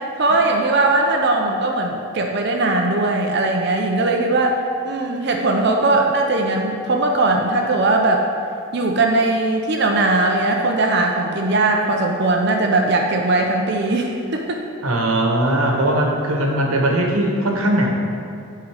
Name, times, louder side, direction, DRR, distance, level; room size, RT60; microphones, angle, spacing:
voice 1, 0.0-8.3 8.7-14.6, right 2 dB, 50° right, 2 dB, 0.6 m, -19 dB
voice 2, 14.8-17.9, right 1 dB, 85° right, 0 dB, 1.1 m, -19 dB
10.5 x 3.8 x 4.9 m, 2.6 s
head